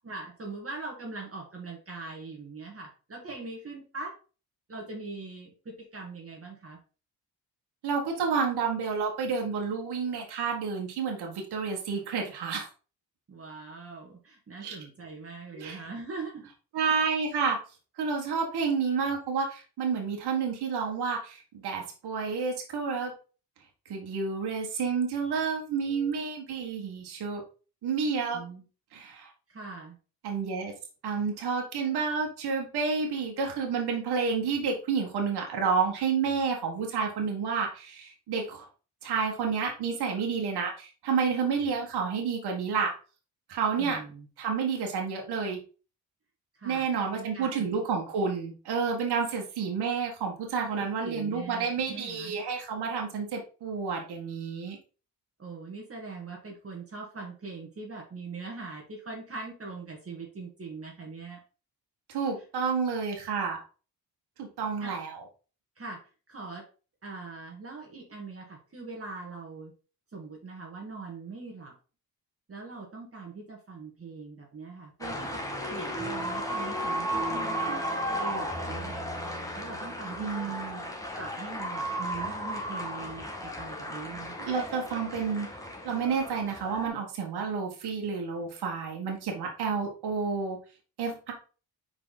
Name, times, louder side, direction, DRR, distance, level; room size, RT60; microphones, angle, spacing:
voice 1, 0.0-4.1 4.7-6.8 13.3-16.4 16.9-17.0 28.3-28.6 29.5-30.0 43.8-44.3 46.5-46.9 47.1-47.8 50.7-52.4 55.4-61.4 64.8-64.9 65.8-66.0 66.3-66.6 67.0-69.7 70.1-71.8 72.5-75.4 75.7-79.0 79.5-80.6 81.1-84.4, right 3 dB, 35° right, -1 dB, 1.9 m, -41 dB
voice 2, 7.8-12.7 14.6-14.8 15.5-15.8 16.7-17.6 18.0-23.1 23.9-27.4 27.8-28.4 28.9-29.3 30.2-30.7 31.0-38.7 39.0-42.9 43.5-44.0 44.4-45.6 46.6-54.8 62.1-63.6 64.4-65.2 80.2-80.9 84.4-85.5 85.8-90.6 91.0-91.3, right 5 dB, 75° right, 1 dB, 1.7 m, -30 dB
sound 1, 75.0-86.9, equal, 10° left, 1.5 m, -34 dB
5.1 x 4.9 x 4.0 m, 0.36 s
cardioid pair, 80°, 39 cm